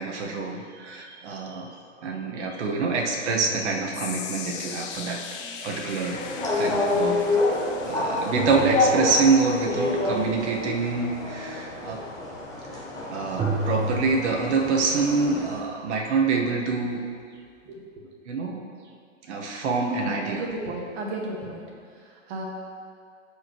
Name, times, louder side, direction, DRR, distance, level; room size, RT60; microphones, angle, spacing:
voice 1, 0.0-1.7 2.0-5.2 5.6-6.2 6.5-7.4 7.8-12.0 12.7-12.8 13.1-17.0 18.2-18.6 19.3-20.4, right 4 dB, 60° right, 0 dB, 1.5 m, -26 dB
sound 1, 2.0-2.1 3.0-6.6 8.4-9.5 13.4-14.0, right 2 dB, 15° right, 0.9 m, -33 dB
sound 2, 3.9-16.3 16.6-16.9 17.6-17.7, left 7 dB, 45° left, 0.7 m, -42 dB
sound 3, 6.1-15.6, left 2 dB, 10° left, 1.1 m, -28 dB
voice 2, 19.9-22.4, right 1 dB, 40° right, -2 dB, 1.7 m, -35 dB
13.0 x 5.0 x 3.1 m, 2.2 s
hypercardioid pair, 135°, 38 cm